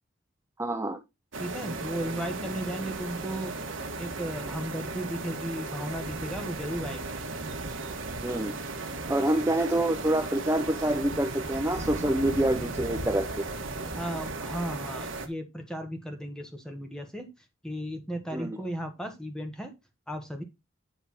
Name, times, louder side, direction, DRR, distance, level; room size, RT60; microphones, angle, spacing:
voice 1, 0.6-1.0 8.2-8.6 9.1-13.5 18.3-18.6, right 1 dB, 15° right, 4 dB, 0.7 m, -27 dB
sound 1, 1.3-15.3, right 3 dB, 75° right, 1.5 m, -36 dB
voice 2, 1.4-3.5 4.0-7.1 13.9-17.3 17.6-19.7 20.1-20.4, equal, 5° left, 5 dB, 1.4 m, -35 dB
9.5 x 3.5 x 5.7 m, 0.23 s
head